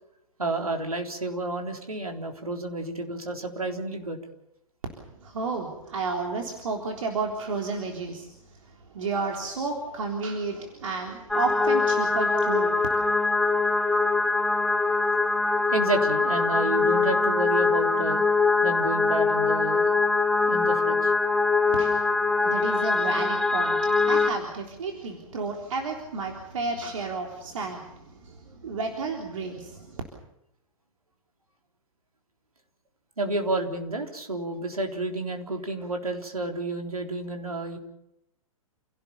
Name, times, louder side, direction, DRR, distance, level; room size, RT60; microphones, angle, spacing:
voice 1, 0.4-4.2 14.9-15.0 15.4-15.5 15.7-18.2 18.6-19.9 20.4-21.1 33.2-37.8, right 2 dB, 85° right, 3 dB, 3.8 m, -30 dB
voice 2, 5.2-8.3 8.9-12.9 21.8-22.0 22.4-23.8 24.0-28.3 28.6-30.0, right 4 dB, 65° right, 2 dB, 3.7 m, -31 dB
sound 1, 11.3-24.3, left 3 dB, ahead, 1.1 m, -23 dB
28.5 x 17.5 x 7.2 m, 0.84 s
figure-of-eight pair, 110°, 18 cm